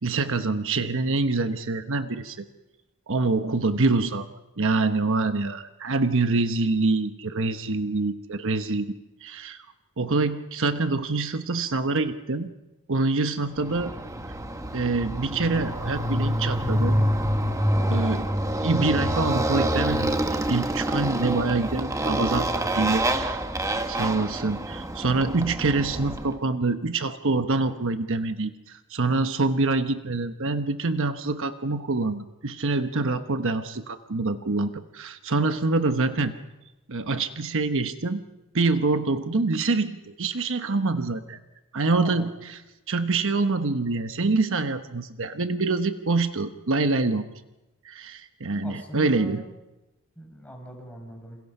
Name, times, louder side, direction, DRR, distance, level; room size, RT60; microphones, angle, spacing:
voice 1, 0.0-2.4 3.1-4.3 4.6-8.9 9.2-9.6 10.0-12.5 12.9-13.9 14.7-17.0 17.9-18.3 18.6-23.4 23.8-36.3 36.9-38.2 38.5-41.4 41.7-42.6 42.9-47.3 47.8-49.4, right 3 dB, 65° right, 8 dB, 1.1 m, -25 dB
Motorcycle, 13.6-26.3, right 1 dB, 15° right, 1.2 m, -27 dB
voice 2, 17.7-18.1 22.5-23.0 41.9-42.4 48.6-49.5 50.2-51.4, equal, 5° left, 1 dB, 6.2 m, -41 dB
29.0 x 28.0 x 5.6 m, 1.0 s
head